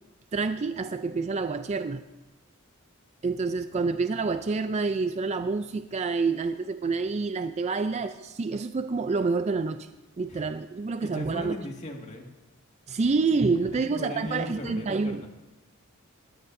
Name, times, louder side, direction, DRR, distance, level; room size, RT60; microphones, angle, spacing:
voice 1, 0.3-2.0 3.2-9.9 10.2-11.5 12.9-15.2, right 4 dB, 35° right, 10 dB, 0.4 m, -28 dB
voice 2, 11.0-12.3 13.5-15.3, left 1 dB, 35° left, 1 dB, 1.9 m, -37 dB
20.0 x 14.0 x 2.6 m, 1.1 s
head